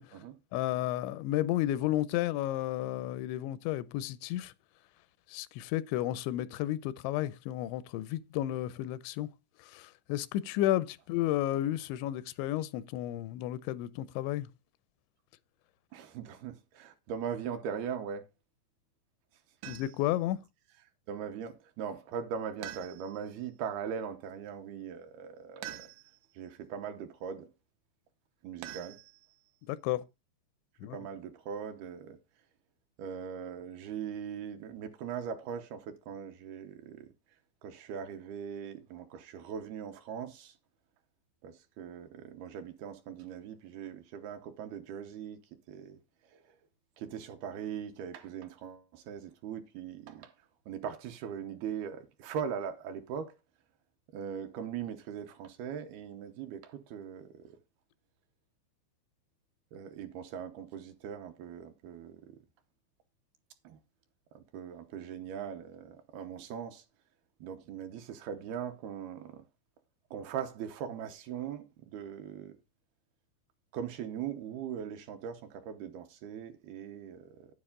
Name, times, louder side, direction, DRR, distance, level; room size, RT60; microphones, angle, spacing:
voice 1, 0.5-4.5 5.3-9.3 9.6-14.5 19.7-20.4 29.7-30.0 30.8-31.0, left 14 dB, 90° left, 3.0 m, -32 dB
voice 2, 15.9-18.3 21.1-25.9 26.4-27.5 28.4-29.0 30.9-32.2 33.0-37.1 37.6-40.5 41.4-45.4 45.7-46.0 47.0-50.3 50.7-53.3 54.1-57.5 59.7-62.2 63.6-63.8 64.3-66.8 67.4-69.4 70.1-72.5 73.7-77.5, right 8 dB, 75° right, 2.6 m, -40 dB
sound 1, 19.6-20.2 22.6-23.4 25.6-26.3 28.6-29.5, right 13 dB, 90° right, 3.3 m, -46 dB
9.8 x 9.4 x 3.7 m
omnidirectional pair, 5.1 m